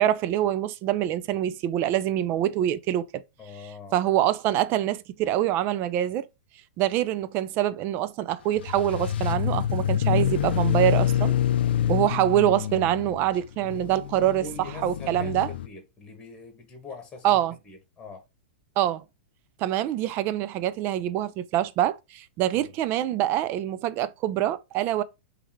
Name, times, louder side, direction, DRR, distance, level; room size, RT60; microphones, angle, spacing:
voice 1, 0.0-3.2 3.9-6.3 6.8-11.3 11.9-14.4 14.8-15.5 17.2-17.5 18.8-19.0 19.6-25.0, right 12 dB, 40° right, 0.5 m, -25 dB
voice 2, 3.4-4.0 14.2-18.2 22.5-22.7, left 3 dB, 15° left, 1.5 m, -44 dB
sound 1, 8.6-15.7, left 10 dB, 70° left, 0.4 m, -26 dB
3.5 x 3.3 x 4.5 m
hypercardioid pair, 115°, 6 cm